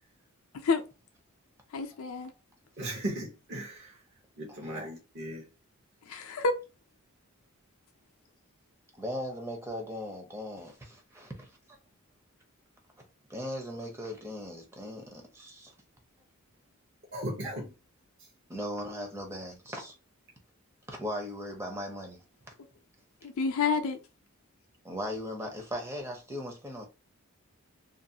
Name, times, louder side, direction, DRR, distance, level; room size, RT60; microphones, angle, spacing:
voice 1, 1.7-2.3 6.1-6.5 23.2-24.0, left 4 dB, 70° left, 0.4 m, -28 dB
voice 2, 2.8-3.9 4.4-5.4 17.1-17.7, right 1 dB, 50° right, 0.8 m, -37 dB
voice 3, 4.5-4.9 9.0-11.5 13.3-15.7 18.5-19.9 20.9-22.2 24.8-26.9, equal, 10° right, 0.6 m, -38 dB
2.4 x 2.3 x 2.7 m
head